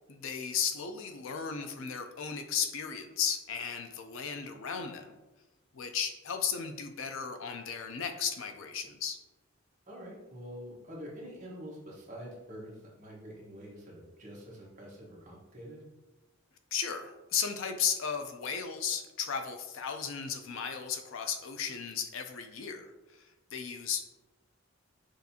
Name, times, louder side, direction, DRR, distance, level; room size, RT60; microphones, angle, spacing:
voice 1, 0.1-5.2 5.7-9.2 16.7-24.0, left 7 dB, 65° left, 6 dB, 0.4 m, -35 dB
voice 2, 9.9-15.8, equal, 35° right, -4 dB, 1.1 m, -46 dB
6.3 x 2.6 x 2.8 m, 1.1 s
head